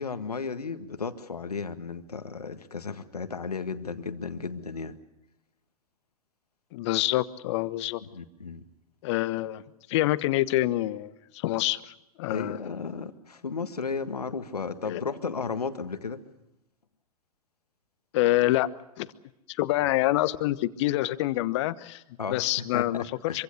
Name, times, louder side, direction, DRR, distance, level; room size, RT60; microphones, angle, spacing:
voice 1, 0.0-5.0 8.0-8.6 12.3-16.2 22.2-23.4, left 5 dB, 80° left, 10 dB, 1.7 m, -34 dB
voice 2, 6.7-8.0 9.0-9.6 9.9-12.6 14.8-15.0 18.1-18.7 19.0-19.1 19.5-22.0 22.3-23.4, left 16 dB, 50° left, 15 dB, 1.1 m, -26 dB
25.5 x 24.5 x 6.5 m, 0.86 s
figure-of-eight pair, 100°, 19 cm